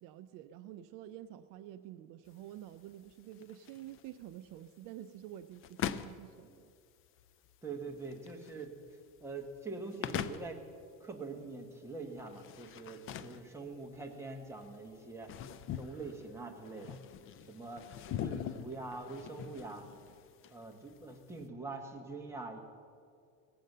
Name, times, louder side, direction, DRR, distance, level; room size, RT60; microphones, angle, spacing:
voice 1, 0.0-6.7, right 12 dB, 65° right, 11 dB, 0.5 m, -49 dB
sound 1, 2.3-21.4, left 9 dB, 40° left, 0.4 m, -44 dB
voice 2, 7.6-10.6 11.0-15.3 15.7-17.0 17.4-17.9 18.2-19.9 20.5-22.6, right 3 dB, 5° right, 1 dB, 1.3 m, -44 dB
17.0 x 7.9 x 6.6 m, 2.3 s
cardioid pair, 145°, 35 cm